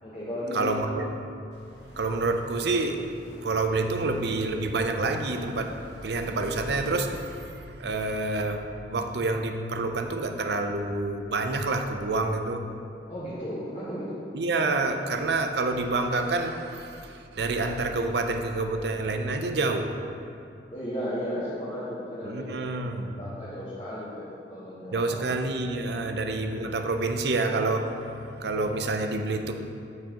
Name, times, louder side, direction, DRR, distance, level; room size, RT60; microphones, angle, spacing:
voice 1, 0.0-0.8 13.1-14.2 20.7-25.2 25.8-26.0, equal, 35° left, -9 dB, 1.3 m, -35 dB
voice 2, 0.5-1.1 1.8-3.0 3.4-12.6 14.3-19.9 22.2-23.2 24.9-29.5, right 3 dB, 65° right, 5 dB, 0.6 m, -28 dB
sound 1, 1.5-7.0, equal, 70° left, 1.0 m, -49 dB
12.5 x 4.8 x 3.0 m, 2.5 s
head